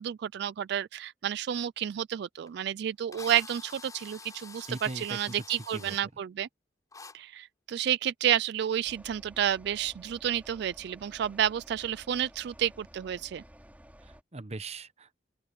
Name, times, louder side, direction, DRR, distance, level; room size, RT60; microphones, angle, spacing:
voice 1, 0.0-6.5 7.1-13.4, right 10 dB, 65° right, 0.3 m, -30 dB
Drill, 2.5-2.6 3.1-6.0 6.9-7.1, left 4 dB, 20° left, 4.6 m, -47 dB
voice 2, 4.7-6.0 14.0-15.1, right 3 dB, 35° right, 1.0 m, -40 dB
sound 1, 8.8-14.2, equal, 10° right, 5.3 m, -53 dB
open air
head